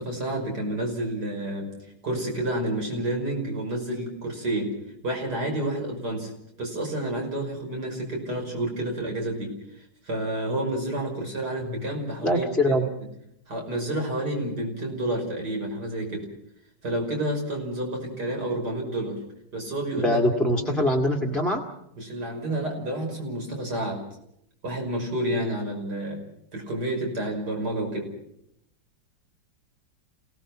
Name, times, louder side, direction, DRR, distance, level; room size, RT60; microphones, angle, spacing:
voice 1, 0.0-1.8 2.0-4.7 5.0-6.3 6.6-9.5 10.0-12.8 13.5-16.3 16.8-19.2 19.5-20.2 20.5-20.8 22.0-24.0 24.6-26.2 26.5-28.1, right 1 dB, 60° right, 1 dB, 6.3 m, -29 dB
voice 2, 12.2-12.9 20.0-21.6, left 1 dB, ahead, 0 dB, 1.7 m, -23 dB
28.5 x 18.0 x 6.1 m, 0.76 s
omnidirectional pair, 2.0 m